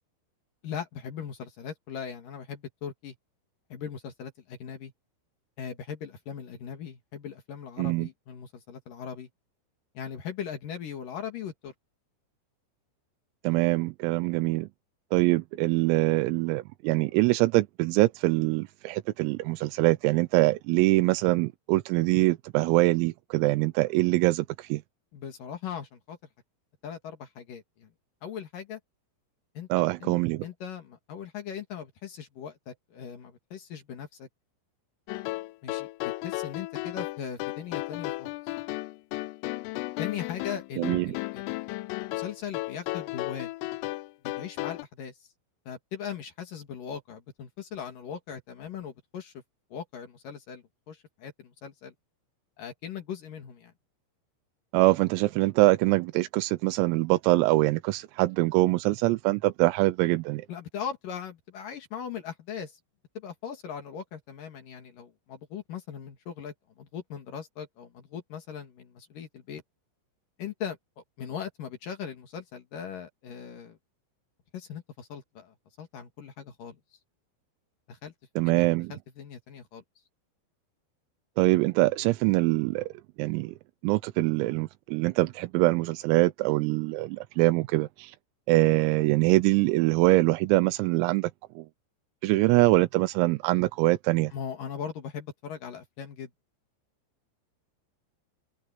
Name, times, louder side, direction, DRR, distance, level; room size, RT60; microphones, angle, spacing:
voice 1, 0.6-3.1 3.7-4.9 5.6-9.3 9.9-11.7 25.1-26.2 26.8-27.9 28.2-28.8 29.5-30.1 30.4-34.3 35.6-38.3 40.0-43.5 44.4-45.2 45.7-49.4 49.7-51.9 52.6-53.7 60.5-62.8 63.1-69.6 70.4-70.8 71.2-73.8 74.5-76.8 77.9-78.1 78.5-79.8 94.3-96.3, left 8 dB, 55° left, 2.8 m, -39 dB
voice 2, 7.8-8.1 13.4-14.7 15.1-24.8 29.7-30.5 40.8-41.2 54.7-60.5 78.4-78.9 81.4-82.9 83.2-83.6 83.8-88.2 88.5-91.3 91.6-91.7 92.2-94.3, right 20 dB, 85° right, 3.5 m, -24 dB
sound 1, 35.1-44.8, left 20 dB, 85° left, 3.2 m, -34 dB
omnidirectional pair, 6.0 m